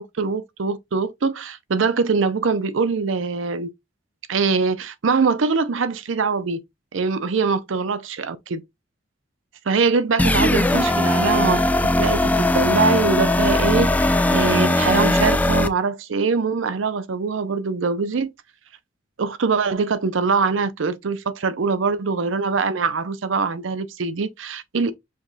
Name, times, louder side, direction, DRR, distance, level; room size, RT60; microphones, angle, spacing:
voice 1, 0.0-3.7 4.3-6.6 6.9-8.6 9.7-11.6 12.0-18.3 19.2-24.9, right 4 dB, 90° right, 0.6 m, -23 dB
sound 1, 10.2-15.7, left 2 dB, 10° left, 0.3 m, -19 dB
5.0 x 4.1 x 2.3 m
head